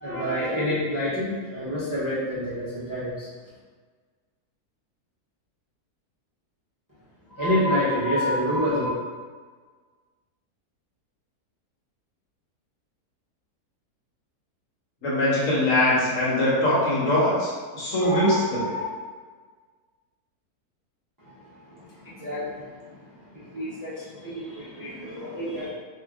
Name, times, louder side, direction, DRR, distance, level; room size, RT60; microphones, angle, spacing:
voice 1, 0.0-3.3 7.3-8.9 18.0-18.8 22.2-22.6 23.5-23.9 24.2-25.7, equal, 25° right, -11 dB, 0.4 m, -27 dB
voice 2, 15.0-18.6, left 1 dB, 60° left, -7 dB, 1.2 m, -22 dB
2.8 x 2.4 x 3.5 m, 1.5 s
omnidirectional pair, 1.7 m